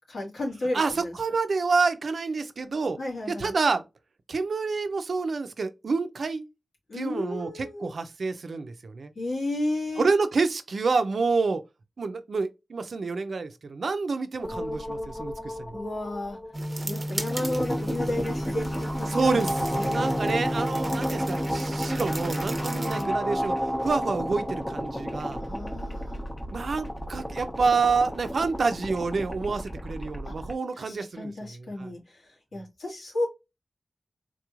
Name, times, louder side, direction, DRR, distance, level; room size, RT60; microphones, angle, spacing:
voice 1, 0.1-1.1 3.0-3.5 6.9-7.9 9.2-10.1 15.7-16.4 16.8-20.1 22.7-23.1 25.4-26.2 30.2-30.3 30.8-32.2 32.5-33.3, left 1 dB, 90° left, 1.9 m, -33 dB
voice 2, 0.7-3.0 3.3-3.8 4.3-6.5 6.9-9.1 10.0-11.6 12.0-15.8 19.1-23.6 23.8-25.4 26.5-31.9, right 4 dB, 75° right, 0.5 m, -28 dB
sound 1, 14.4-30.5, equal, 15° left, 0.9 m, -32 dB
sound 2, 16.5-23.0, right 1 dB, 35° right, 0.8 m, -32 dB
3.9 x 3.0 x 2.4 m
wide cardioid pair, 90°, 0 cm